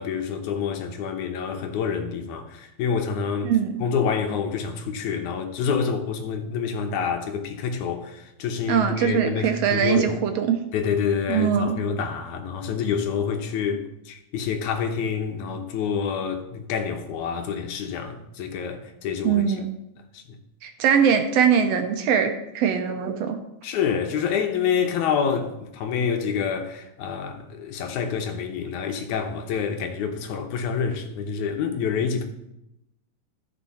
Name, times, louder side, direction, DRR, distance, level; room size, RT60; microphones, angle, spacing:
voice 1, 0.0-3.5 3.8-10.2 10.7-19.6 20.1-20.2 23.6-32.2, left 6 dB, 85° left, 2.5 m, -27 dB
voice 2, 8.7-10.6 11.3-11.8 19.2-19.7 20.6-23.4, right 7 dB, 70° right, 1.7 m, -22 dB
14.0 x 5.5 x 4.2 m
omnidirectional pair, 3.3 m